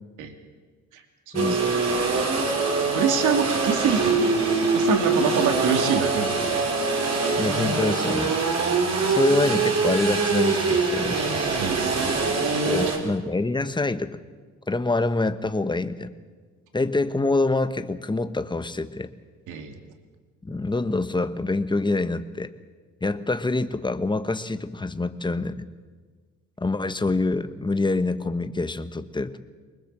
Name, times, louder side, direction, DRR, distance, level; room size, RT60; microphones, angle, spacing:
sound 1, 1.3-13.0, right 4 dB, 60° right, 4.2 m, -23 dB
voice 1, 1.3-1.6 2.9-4.4 4.7-6.6 11.6-12.9 19.5-19.8, right 7 dB, 85° right, 6 dB, 2.4 m, -26 dB
voice 2, 7.4-8.4 9.1-11.2 12.6-14.2 14.7-16.1 16.7-19.1 20.4-22.5 23.0-25.6 26.6-29.4, left 2 dB, 15° left, 10 dB, 1.3 m, -26 dB
24.0 x 20.5 x 7.5 m, 1.4 s
cardioid pair, 90°, 30 cm